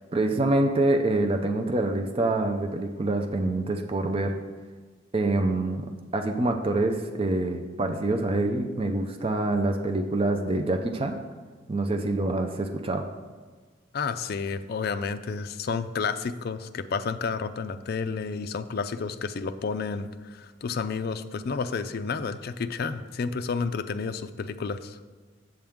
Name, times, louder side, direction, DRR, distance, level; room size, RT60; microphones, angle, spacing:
voice 1, 0.1-4.4 5.1-5.8 6.1-11.2 11.7-13.1, right 2 dB, 30° right, 4 dB, 0.4 m, -26 dB
voice 2, 13.9-25.0, left 5 dB, 50° left, 9 dB, 0.4 m, -31 dB
7.7 x 7.3 x 3.6 m, 1.5 s
head